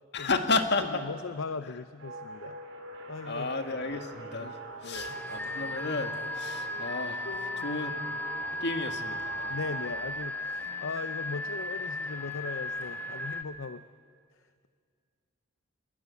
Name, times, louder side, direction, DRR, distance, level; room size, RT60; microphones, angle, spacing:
voice 1, 0.1-1.1 3.3-7.3 7.6-7.9 8.6-9.5, left 3 dB, 55° left, 6 dB, 1.9 m, -32 dB
voice 2, 0.9-2.6 3.1-3.5 4.4-4.5 4.8-5.2 7.2-7.7 8.5-8.7 9.5-13.8, left 4 dB, 75° left, 11 dB, 0.7 m, -39 dB
sound 1, 2.0-10.0, right 1 dB, 75° right, 5.3 m, -43 dB
sound 2, 4.9-13.4, left 2 dB, 10° left, 1.2 m, -36 dB
sound 3, 5.0-7.0 7.6-7.7 8.9-9.0 9.2-9.5 10.5-10.7 12.3-12.9, left 1 dB, 40° left, 6.0 m, -56 dB
28.0 x 22.0 x 8.3 m, 2.1 s
head